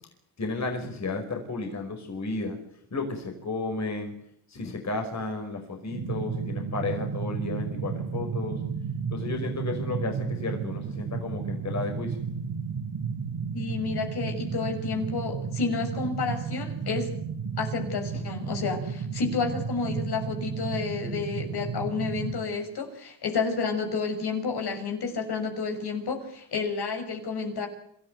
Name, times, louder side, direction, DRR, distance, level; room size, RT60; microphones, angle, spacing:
voice 1, 0.4-2.6 2.9-4.1 4.5-8.6 9.1-12.2, left 3 dB, 35° left, 4 dB, 5.3 m, -33 dB
sound 1, 5.9-22.4, right 6 dB, 50° right, 4.1 m, -33 dB
voice 2, 13.5-17.1 17.6-27.7, left 4 dB, 50° left, 5 dB, 6.2 m, -30 dB
27.0 x 14.0 x 9.4 m, 0.72 s
cardioid pair, 100°, 48 cm